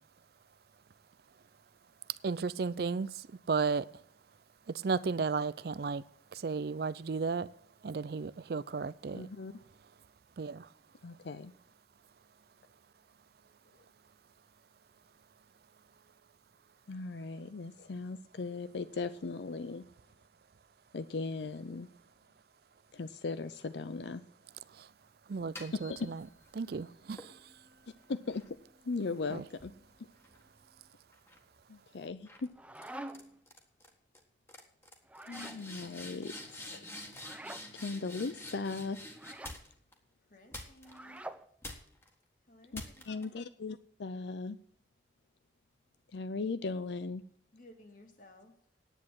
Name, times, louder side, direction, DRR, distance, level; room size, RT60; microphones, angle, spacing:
voice 1, 2.2-3.9 4.7-6.0 6.3-7.5 7.8-9.3 10.4-10.7 24.7-24.9 25.3-26.2 26.5-27.4 29.3-29.4, right 4 dB, 55° right, 0.4 m, -34 dB
voice 2, 9.1-9.6 11.0-11.5 16.9-19.8 20.9-21.9 22.9-24.2 25.7-26.1 28.1-28.4 28.8-29.7 31.7-32.5 35.3-36.8 37.7-39.0 42.7-44.6 46.1-47.2, left 4 dB, 70° left, 0.5 m, -38 dB
sound 1, 25.3-26.6 27.2-30.7 31.1-31.5 32.3-32.5 32.7-33.2 33.5-33.9 34.1-34.2 34.5-39.9 40.5-41.2 41.6-42.1 42.7-43.2, left 1 dB, 15° left, 1.6 m, -48 dB
sound 2, 32.3-33.4 35.0-35.6 37.2-37.7 39.1-39.6 40.8-41.5, right 1 dB, 5° right, 0.6 m, -46 dB
voice 3, 40.3-41.3 42.5-43.5 47.5-48.5, left 1 dB, 45° left, 2.2 m, -57 dB
10.0 x 8.6 x 7.4 m
head